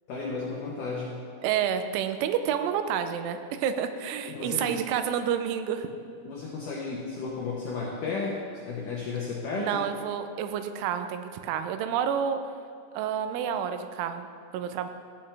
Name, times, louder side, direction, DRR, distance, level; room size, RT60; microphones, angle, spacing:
voice 1, 0.1-1.1 4.3-4.8 6.2-8.4 8.7-9.8, left 4 dB, 85° left, -3 dB, 1.8 m, -33 dB
voice 2, 1.4-5.9 9.6-12.4 12.9-14.3 14.5-14.9, right 8 dB, 90° right, 8 dB, 3.1 m, -29 dB
15.0 x 8.7 x 3.4 m, 2.5 s
omnidirectional pair, 5.4 m